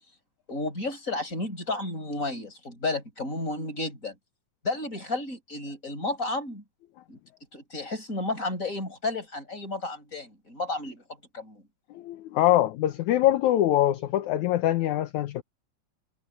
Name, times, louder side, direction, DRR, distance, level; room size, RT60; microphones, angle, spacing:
voice 1, 0.5-4.1 4.6-6.6 7.1-7.2 7.5-11.0 11.3-11.6, left 2 dB, 25° left, 7.3 m, -32 dB
voice 2, 12.0-15.4, left 13 dB, 70° left, 2.3 m, -23 dB
omnidirectional pair, 3.7 m